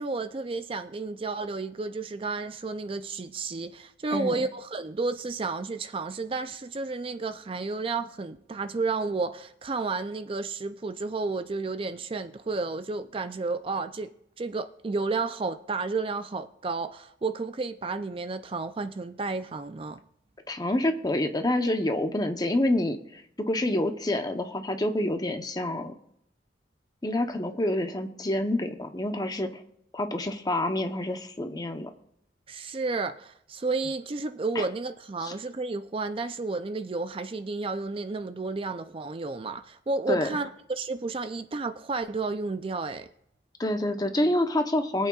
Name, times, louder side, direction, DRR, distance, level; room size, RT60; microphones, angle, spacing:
voice 1, 0.0-14.1 14.4-20.0 32.5-43.1, right 3 dB, 30° right, 0.4 m, -32 dB
voice 2, 20.5-25.9 27.0-29.6 29.9-31.9 34.5-34.7 35.2-35.3 40.1-40.3 43.6-45.1, left 1 dB, 20° left, 0.8 m, -27 dB
23.5 x 8.4 x 2.4 m
head